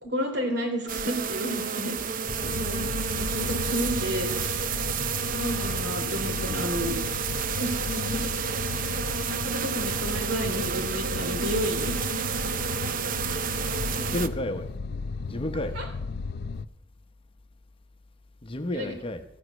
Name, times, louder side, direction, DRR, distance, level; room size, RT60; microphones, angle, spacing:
voice 1, 0.0-2.0 2.5-4.6 5.3-6.9 7.6-8.9 9.2-12.2 15.3-15.4 15.7-15.8 18.7-18.9, equal, 65° right, 3.6 m, -32 dB
sound 1, 0.9-14.3, right 6 dB, 45° right, 0.6 m, -30 dB
sound 2, 2.3-16.7, left 4 dB, 55° left, 0.5 m, -35 dB
voice 2, 14.0-14.7 15.3-15.8 18.4-19.2, left 1 dB, 30° left, 0.8 m, -31 dB
14.0 x 9.5 x 6.2 m
head